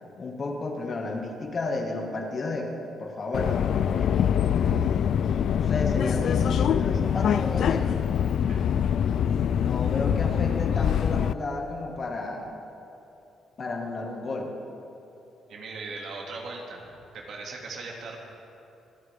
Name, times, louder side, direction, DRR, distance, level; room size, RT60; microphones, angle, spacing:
voice 1, 0.2-2.7 3.0-4.8 5.5-8.0 9.5-12.5 13.6-14.5, left 2 dB, 45° left, 1 dB, 2.0 m, -32 dB
Subway metro underground, 3.3-11.3, left 8 dB, 65° left, 0.4 m, -24 dB
voice 2, 15.5-16.8 17.1-18.2, right 3 dB, 70° right, -1 dB, 2.5 m, -38 dB
25.0 x 10.5 x 3.7 m, 2.9 s
cardioid pair, 90°, 0 cm